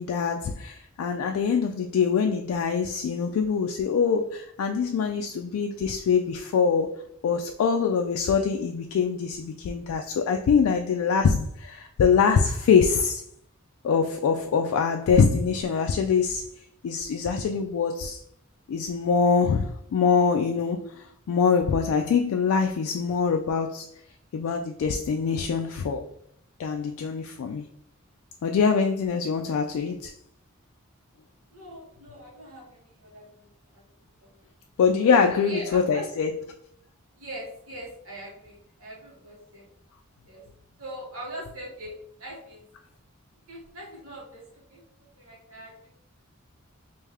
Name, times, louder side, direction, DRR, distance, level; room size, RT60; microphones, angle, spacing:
voice 1, 0.0-6.9 7.2-13.2 13.8-16.5 16.8-18.2 18.7-23.9 24.3-26.0 26.6-27.6 28.4-30.1 34.8-36.3, left 6 dB, 85° left, 0.3 m, -24 dB
voice 2, 31.5-33.5 33.7-33.8 34.2-34.3 35.1-36.1 37.2-39.7 40.3-40.4 40.8-42.6 43.5-44.8 45.2-45.9, right 1 dB, 75° right, 1.2 m, -42 dB
3.3 x 2.6 x 3.4 m
head